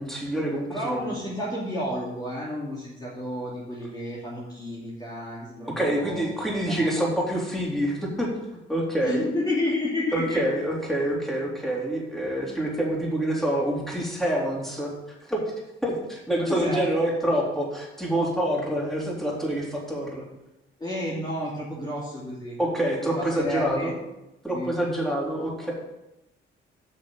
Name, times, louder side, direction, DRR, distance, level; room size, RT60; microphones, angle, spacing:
voice 1, 0.0-1.2 5.8-8.3 8.7-9.3 10.1-14.9 15.2-15.4 15.8-20.3 22.6-23.9 24.4-25.7, right 1 dB, ahead, -3 dB, 3.7 m, -26 dB
voice 2, 0.7-7.1 9.0-10.4 16.4-16.8 20.8-22.6 23.0-23.9 24.5-24.7, left 1 dB, 20° left, -6 dB, 2.6 m, -31 dB
8.0 x 6.5 x 7.0 m, 0.93 s
cardioid pair, 90°, 20 cm